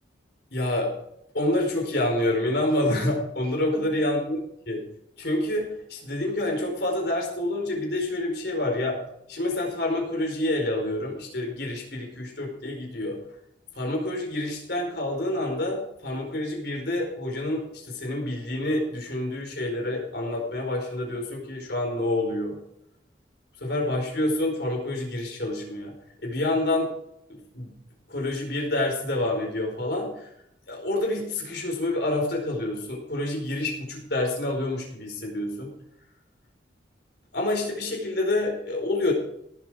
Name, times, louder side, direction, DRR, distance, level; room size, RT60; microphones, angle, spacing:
voice 1, 0.5-0.9 1.3-4.4 4.7-4.8 5.2-9.0 9.3-13.2 13.7-22.6 23.6-25.9 26.2-26.9 27.3-27.7 28.1-30.3 30.7-35.7 37.3-39.1, left 1 dB, 60° left, 1 dB, 4.9 m, -27 dB
17.5 x 8.4 x 5.0 m, 0.75 s
head